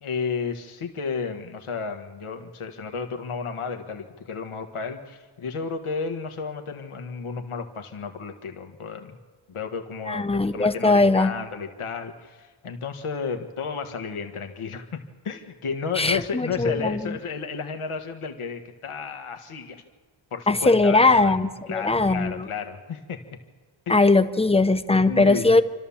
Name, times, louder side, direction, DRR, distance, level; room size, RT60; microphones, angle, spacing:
voice 1, 0.0-9.2 9.5-19.8 20.3-21.4 21.7-23.2 23.9-24.2 25.1-25.5, left 5 dB, 90° left, 5 dB, 1.6 m, -32 dB
voice 2, 10.1-11.3 16.0-17.0 20.5-22.4 23.9-25.6, left 3 dB, 10° left, 10 dB, 0.8 m, -20 dB
28.5 x 13.0 x 7.1 m, 1.6 s
wide cardioid pair, 115°, 49 cm